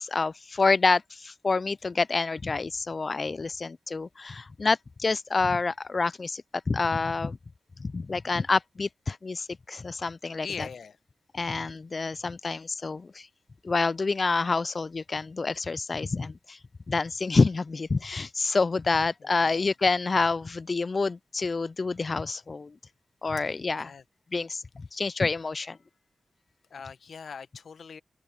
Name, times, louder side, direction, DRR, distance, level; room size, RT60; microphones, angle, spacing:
voice 1, 0.0-7.4 7.8-10.7 11.3-13.3 13.6-16.6 16.9-22.8 23.2-23.9 24.3-24.6 24.9-25.8, left 4 dB, 50° left, 0.3 m, -27 dB
voice 2, 10.4-11.0 19.2-19.7 23.4-24.0 26.7-28.0, left 6 dB, 75° left, 0.9 m, -42 dB
open air
cardioid pair, 50°, 0 cm